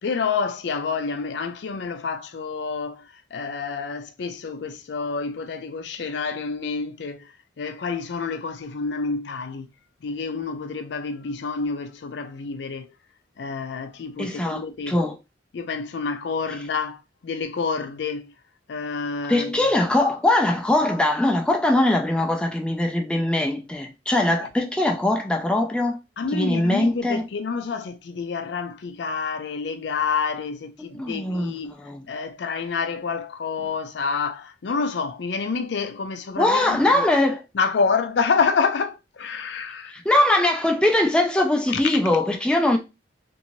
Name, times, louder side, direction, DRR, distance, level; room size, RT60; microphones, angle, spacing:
voice 1, 0.0-9.7 10.0-12.9 13.4-15.0 15.5-18.3 18.7-19.7 24.4-24.5 26.2-31.7 32.1-37.1 37.5-39.9 41.7-41.8, left 5 dB, 75° left, 0.4 m, -28 dB
voice 2, 14.2-15.1 19.3-26.0 26.3-27.3 30.9-32.0 36.4-37.4 39.9-42.8, left 1 dB, 5° left, 0.3 m, -21 dB
2.7 x 2.6 x 2.9 m
head